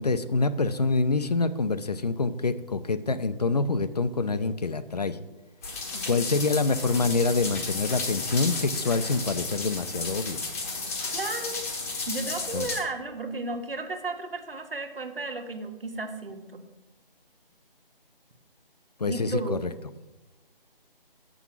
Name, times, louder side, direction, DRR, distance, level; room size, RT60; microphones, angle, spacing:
voice 1, 0.0-5.2 6.1-10.4 12.5-12.7 19.0-19.7, left 3 dB, 45° left, 12 dB, 0.6 m, -26 dB
sound 1, 5.6-12.8, left 3 dB, 15° left, 1.0 m, -33 dB
voice 2, 5.9-6.3 11.1-11.7 12.1-16.6 19.1-19.6, right 3 dB, 70° right, 5 dB, 1.7 m, -34 dB
7.9 x 6.1 x 7.3 m, 1.1 s
figure-of-eight pair, 160°, 29 cm